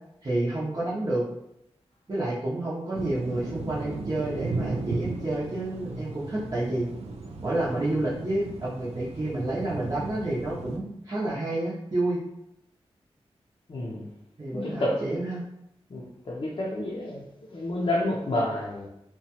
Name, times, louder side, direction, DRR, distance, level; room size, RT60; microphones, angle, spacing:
voice 1, 0.2-1.3 2.1-6.9 7.4-12.2 14.4-15.4, right 1 dB, 35° right, -8 dB, 0.7 m, -29 dB
sound 1, 2.9-10.8, right 3 dB, 75° right, 0.4 m, -36 dB
voice 2, 13.7-14.1 14.5-15.0 15.9-18.9, left 1 dB, 50° left, -4 dB, 0.5 m, -29 dB
2.9 x 2.2 x 2.8 m, 0.83 s
wide cardioid pair, 75°, 11 cm